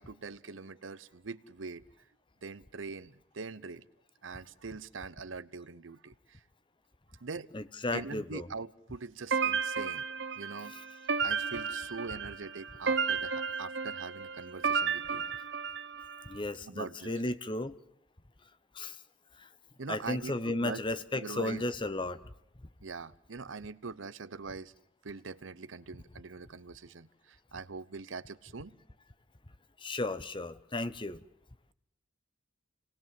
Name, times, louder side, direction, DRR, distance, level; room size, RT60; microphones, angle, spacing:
voice 1, 0.0-1.8 2.4-3.9 4.2-6.4 7.2-7.5 7.9-10.0 10.4-10.8 11.2-15.2 16.7-17.1 19.8-20.8 21.1-21.6 22.8-24.7 25.0-28.8, right 4 dB, 90° right, 16 dB, 0.9 m, -43 dB
voice 2, 7.5-8.5 10.6-10.8 15.1-15.3 16.3-17.8 18.7-19.0 19.4-19.5 19.9-22.2 29.8-31.2, left 2 dB, 25° left, 14 dB, 1.0 m, -34 dB
sound 1, 9.3-16.2, right 5 dB, 65° right, 1.2 m, -33 dB
28.0 x 19.0 x 7.6 m, 0.79 s
head